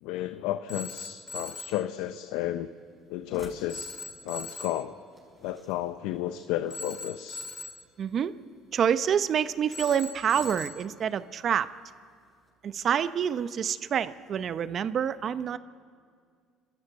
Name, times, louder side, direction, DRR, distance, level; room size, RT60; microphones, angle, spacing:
voice 1, 0.0-2.7 3.1-3.9 4.2-5.0 5.4-7.5, left 13 dB, 80° left, 10 dB, 0.7 m, -32 dB
Telephone, 0.7-1.8 3.7-4.9 6.7-7.9 9.7-10.9, left 2 dB, 25° left, 2.0 m, -40 dB
sound 1, 2.4-12.5, right 1 dB, 10° right, 5.9 m, -57 dB
voice 2, 8.0-8.3 8.7-11.7 12.6-15.6, right 8 dB, 50° right, 14 dB, 0.8 m, -27 dB
29.5 x 13.0 x 9.0 m, 2.1 s
supercardioid pair, 90°, 0 cm